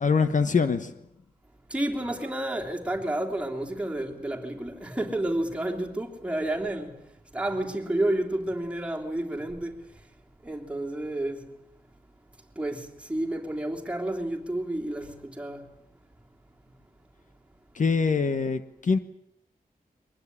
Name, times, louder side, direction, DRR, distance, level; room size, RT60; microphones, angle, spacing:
voice 1, 0.0-0.9 17.7-19.0, left 5 dB, 55° left, 1.3 m, -24 dB
voice 2, 1.7-6.9 7.3-9.7 10.4-11.4 12.6-15.6, right 1 dB, 5° right, 3.2 m, -30 dB
23.0 x 19.5 x 9.9 m
wide cardioid pair, 160°, 16 cm